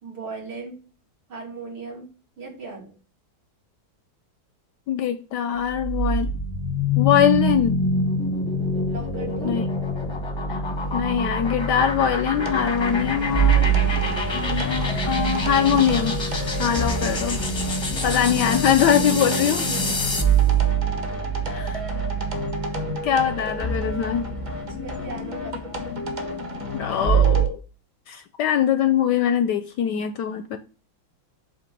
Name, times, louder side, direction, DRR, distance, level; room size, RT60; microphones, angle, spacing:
voice 1, 0.0-0.8 1.3-2.1 2.4-3.0 8.9-9.6 19.1-19.9 21.0-21.7 24.6-25.8, right 3 dB, 75° right, 3.4 m, -37 dB
voice 2, 4.9-6.3 7.0-7.8 9.4-9.6 10.5-10.6 10.9-13.9 14.3-16.2 16.6-17.4 18.0-19.6 21.5-21.8 23.0-24.3 26.7-27.6 28.1-30.6, left 9 dB, 75° left, 1.0 m, -22 dB
sound 1, 5.6-20.4, left 2 dB, 25° left, 0.6 m, -26 dB
sound 2, 12.4-27.5, right 6 dB, 20° right, 1.0 m, -25 dB
7.5 x 3.0 x 6.0 m
omnidirectional pair, 2.2 m